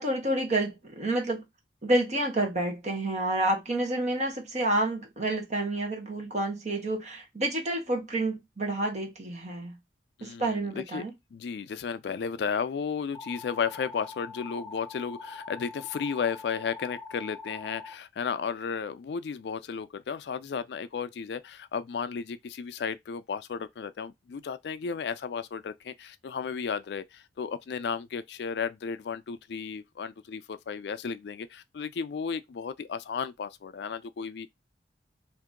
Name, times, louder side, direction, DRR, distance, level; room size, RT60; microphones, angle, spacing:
voice 1, 0.0-1.4 1.8-9.8 10.2-11.1, right 1 dB, 40° right, 1.1 m, -29 dB
voice 2, 10.2-11.0 11.3-34.5, left 6 dB, 65° left, 0.4 m, -34 dB
sound 1, 13.1-17.9, left 4 dB, 10° left, 0.5 m, -43 dB
2.9 x 2.6 x 3.7 m
head